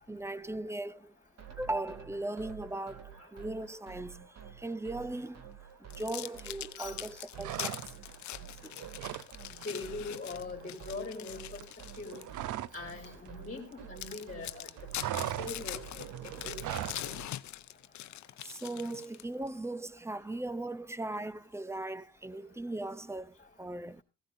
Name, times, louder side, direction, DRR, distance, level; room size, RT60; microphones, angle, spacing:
voice 1, 0.1-1.1 1.6-4.3 4.6-5.4 5.9-7.7 8.6-8.7 18.4-24.0, right 2 dB, 10° right, 0.5 m, -38 dB
sound 1, 1.4-17.2, right 9 dB, 60° right, 2.5 m, -50 dB
sound 2, 5.9-12.4 12.9-13.1 13.6-13.7 14.0-19.5, left 14 dB, 70° left, 0.7 m, -43 dB
sound 3, 7.4-8.2 8.5-9.3 9.6-9.8 10.1-12.9 13.1-14.2 14.5-17.1, right 12 dB, 80° right, 0.7 m, -39 dB
voice 2, 9.6-11.6 12.0-12.3 12.7-14.7 15.0-15.8 16.2-16.6, left 3 dB, 30° left, 3.4 m, -41 dB
16.0 x 15.5 x 2.6 m
cardioid pair, 90°, 30 cm